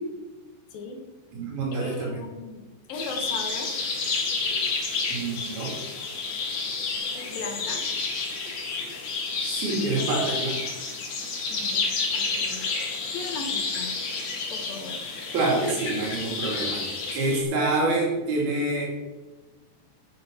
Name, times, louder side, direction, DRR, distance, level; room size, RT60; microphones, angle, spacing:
voice 1, 0.7-1.0 1.7-3.7 7.1-7.8 11.5-12.7 13.1-14.0 14.5-15.0, left 3 dB, 75° left, 4 dB, 3.1 m, -37 dB
voice 2, 1.3-2.2 5.1-5.8 9.6-10.6 15.3-18.9, right 2 dB, 85° right, -2 dB, 4.7 m, -27 dB
sound 1, 2.9-17.4, left 4 dB, 55° left, 3.1 m, -30 dB
9.3 x 8.8 x 5.7 m, 1.2 s
omnidirectional pair, 4.2 m